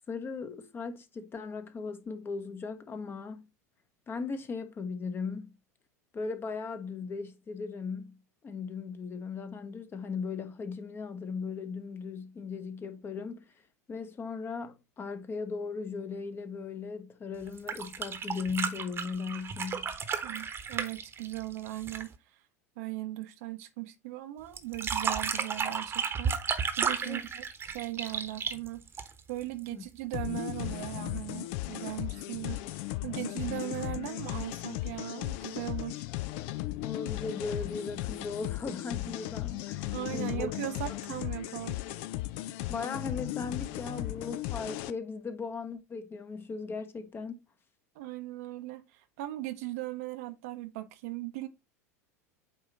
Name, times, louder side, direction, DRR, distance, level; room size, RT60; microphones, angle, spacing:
voice 1, 0.1-3.5 4.1-5.5 6.1-8.2 8.4-13.5 13.9-19.9 27.0-27.2 29.7-29.8 36.8-40.5 42.5-47.4, left 4 dB, 25° left, 1.0 m, -38 dB
sound 1, 17.5-22.1 24.6-29.4 30.8-30.9, right 6 dB, 25° right, 1.1 m, -33 dB
voice 2, 20.2-22.1 22.8-27.4 27.7-28.8 29.3-36.0 39.9-41.8 47.9-51.5, right 17 dB, 60° right, 0.9 m, -38 dB
sound 2, 30.1-44.9, left 16 dB, 55° left, 0.5 m, -36 dB
8.6 x 3.0 x 4.0 m
figure-of-eight pair, 80°, 9 cm